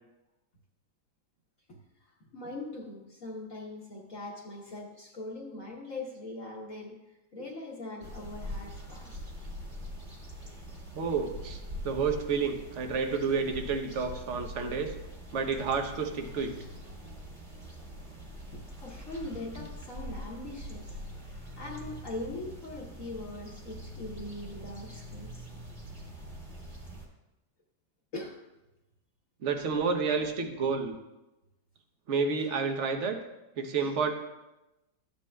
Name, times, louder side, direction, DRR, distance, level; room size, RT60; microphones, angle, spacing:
voice 1, 1.7-9.2 18.5-25.5 28.1-28.4 32.4-32.5 33.8-34.0, left 2 dB, 50° left, -4 dB, 1.3 m, -42 dB
sound 1, 8.0-27.1, equal, 25° right, 1.6 m, -43 dB
voice 2, 10.9-14.9 15.3-16.5 29.4-31.0 32.1-33.2 33.6-34.1, right 5 dB, 55° right, 5 dB, 0.9 m, -30 dB
13.5 x 8.5 x 2.2 m, 0.99 s
omnidirectional pair, 2.0 m